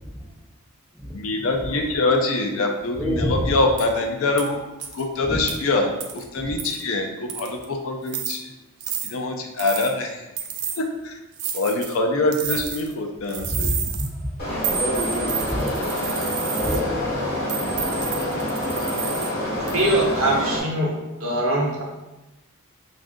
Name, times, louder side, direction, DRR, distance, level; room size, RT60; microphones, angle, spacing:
voice 1, 1.1-4.6 4.9-8.4 9.0-10.2 10.8-11.1 11.5-13.8, left 2 dB, 65° left, 3 dB, 0.4 m, -24 dB
voice 2, 3.0-3.5 5.2-5.4 13.5-15.9 16.5-17.0, equal, ahead, -3 dB, 0.3 m, -27 dB
sound 1, 3.8-3.9 4.4-4.5 4.8-5.0 5.5-5.6 6.0-6.2 6.6-6.8 7.3-7.6 8.1-8.4 8.8-9.1 9.6-9.9 10.4-10.8 11.4-12.0 12.3-12.9 13.3-14.1 14.6-16.8 17.5-19.3 19.7-20.0, right 8 dB, 85° right, 0.4 m, -30 dB
sound 2, 14.4-20.6, left 1 dB, 45° left, 0.8 m, -27 dB
voice 3, 19.7-20.9 21.2-21.8, right 1 dB, 65° right, -2 dB, 0.8 m, -22 dB
2.6 x 2.4 x 3.5 m, 1.0 s
head